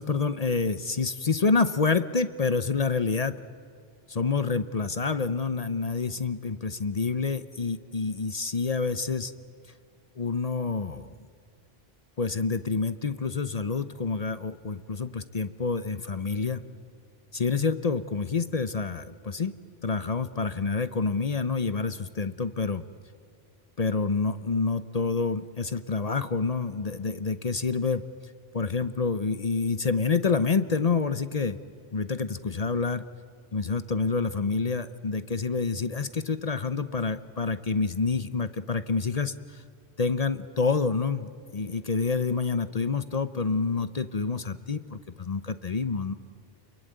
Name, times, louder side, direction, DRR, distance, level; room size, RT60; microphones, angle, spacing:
voice 1, 0.0-3.4 4.1-9.3 10.2-11.2 12.2-16.6 17.3-19.5 19.8-22.8 23.8-28.0 28.5-31.6 31.9-33.0 33.5-39.6 40.0-46.1, left 4 dB, 40° left, 12 dB, 0.8 m, -28 dB
28.5 x 22.5 x 9.3 m, 2.2 s
omnidirectional pair, 1.1 m